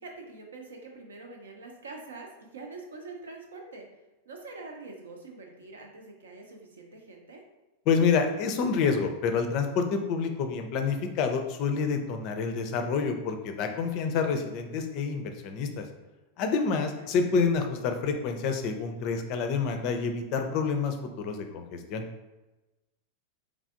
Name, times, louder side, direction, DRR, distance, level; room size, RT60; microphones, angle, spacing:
voice 1, 0.0-3.9 4.3-7.4 13.9-14.4 16.9-17.1, right 3 dB, 70° right, 2 dB, 0.6 m, -45 dB
voice 2, 7.9-15.8 16.4-22.0, left 5 dB, 40° left, 6 dB, 0.4 m, -28 dB
3.6 x 3.3 x 2.4 m, 1.1 s
figure-of-eight pair, 90°, 0 cm